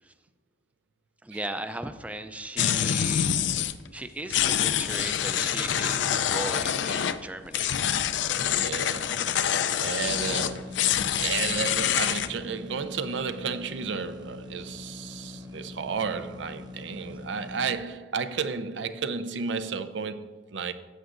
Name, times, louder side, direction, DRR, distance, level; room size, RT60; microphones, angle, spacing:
voice 1, 1.2-3.3 3.9-7.8, right 1 dB, 10° right, 0.4 m, -37 dB
sound 1, 2.6-3.7 4.3-7.2 7.5-12.3, left 9 dB, 80° left, 0.4 m, -26 dB
voice 2, 8.6-9.3 9.7-20.7, right 5 dB, 90° right, 0.5 m, -33 dB
sound 2, 10.1-17.8, left 2 dB, 25° right, 1.0 m, -42 dB
15.5 x 7.9 x 2.5 m
head